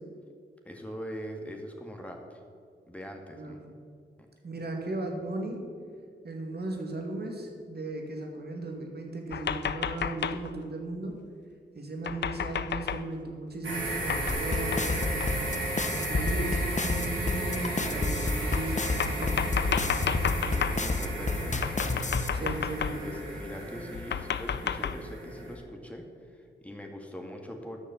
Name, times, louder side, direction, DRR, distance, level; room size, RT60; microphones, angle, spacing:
voice 1, 0.7-2.4 2.9-3.8 20.4-21.8 22.4-27.8, equal, 5° left, 2 dB, 2.0 m, -42 dB
voice 2, 4.4-5.7 6.2-11.2 11.7-15.5 15.9-19.5 22.3-23.0, right 2 dB, 50° right, 2 dB, 2.3 m, -36 dB
sound 1, 9.3-10.5 12.0-13.1 14.1-14.4 14.7-14.9 15.2-15.3 16.2-16.3 17.3-17.4 18.5-20.8 21.6-23.2 23.9-25.0, left 8 dB, 60° left, 0.5 m, -32 dB
sound 2, 13.6-25.5, right 1 dB, 70° right, 2.7 m, -34 dB
sound 3, 14.3-22.3, left 3 dB, 35° left, 1.0 m, -29 dB
9.9 x 6.4 x 6.9 m, 2.2 s
supercardioid pair, 45°, 21 cm